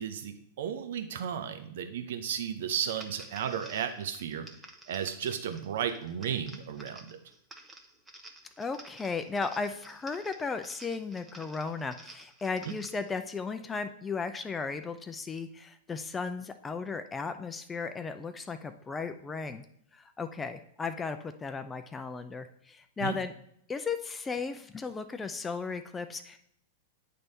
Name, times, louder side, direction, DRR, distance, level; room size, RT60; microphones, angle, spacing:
voice 1, 0.0-4.5 4.9-7.2 23.0-23.2, right 8 dB, 70° right, 8 dB, 0.8 m, -34 dB
sound 1, 2.8-13.1, right 2 dB, 15° right, 0.9 m, -52 dB
voice 2, 8.6-19.6 19.9-23.3 23.7-26.4, left 4 dB, 15° left, 9 dB, 0.4 m, -35 dB
8.8 x 3.4 x 4.1 m, 0.70 s
hypercardioid pair, 110°, 0 cm